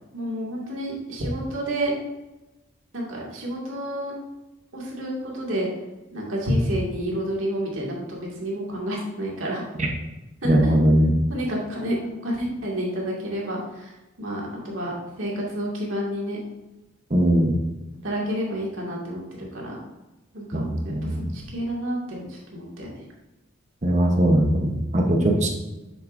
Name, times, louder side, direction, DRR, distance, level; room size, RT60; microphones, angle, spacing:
voice 1, 0.1-1.9 2.9-4.1 4.7-5.7 6.1-9.6 10.4-10.8 11.3-12.0 12.2-14.9 15.2-16.4 18.0-19.8 20.3-23.0 25.2-25.4, equal, 85° right, -3 dB, 2.1 m, -29 dB
voice 2, 10.4-11.2 17.1-17.5 20.5-21.3 23.8-25.5, right 1 dB, 35° right, 0 dB, 0.9 m, -20 dB
8.3 x 6.2 x 2.6 m, 1.0 s
head